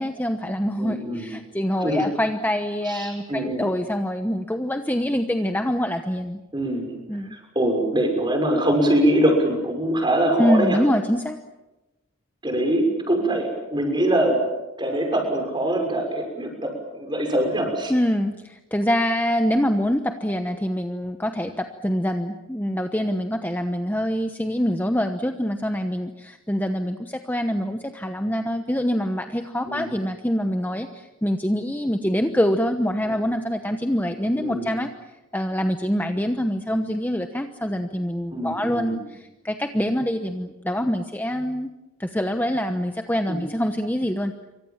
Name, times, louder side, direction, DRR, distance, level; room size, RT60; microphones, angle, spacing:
voice 1, 0.0-6.4 7.1-7.4 10.4-11.4 17.9-34.9 35.3-41.7 42.0-44.3, equal, 10° left, 6 dB, 1.0 m, -25 dB
voice 2, 0.8-1.3 1.8-2.1 2.8-3.6 6.5-6.9 7.3-10.8 12.4-14.4 14.8-17.9 29.6-29.9 33.0-33.1 34.4-34.7 38.3-39.0 43.3-43.4, right 1 dB, 20° right, 4 dB, 6.2 m, -23 dB
28.0 x 24.5 x 7.4 m, 1.0 s
head